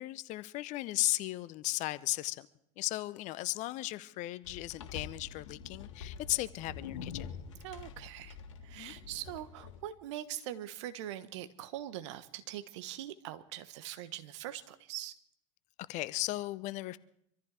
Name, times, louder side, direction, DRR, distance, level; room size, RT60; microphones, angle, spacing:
voice 1, 0.0-2.5 2.8-7.4 8.8-8.9 15.9-17.0, left 18 dB, 50° left, 0.7 m, -36 dB
sound 1, 4.4-9.8, left 6 dB, 70° left, 1.9 m, -46 dB
voice 2, 7.6-8.4 8.6-15.1, right 12 dB, 65° right, 1.2 m, -42 dB
25.5 x 14.0 x 3.4 m
hypercardioid pair, 80°, 16 cm